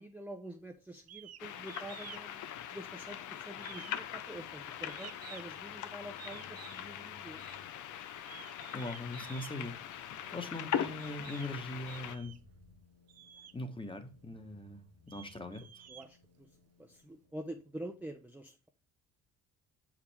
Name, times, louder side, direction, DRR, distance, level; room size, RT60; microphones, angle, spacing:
voice 1, 0.0-2.4 2.7-7.4 10.2-10.4 15.9-16.5 16.8-18.7, right 1 dB, 5° right, 4 dB, 0.6 m, -47 dB
sound 1, 1.0-18.0, left 5 dB, 65° left, 2.2 m, -65 dB
sound 2, 1.1-1.4 1.7-2.3 2.6-3.2 3.6-5.6 6.2-6.9 7.4-7.6 8.2-9.6 10.4-10.5 11.0-11.5 11.9-12.5 13.1-13.6 14.2-14.3 14.8-16.6, right 11 dB, 55° right, 0.6 m, -52 dB
sound 3, 1.4-12.2, left 10 dB, 80° left, 0.7 m, -41 dB
voice 2, 8.7-9.7 10.3-12.3 13.5-15.8, left 2 dB, 15° left, 7 dB, 1.2 m, -41 dB
6.8 x 5.0 x 3.4 m, 0.35 s
cardioid pair, 90°, 30 cm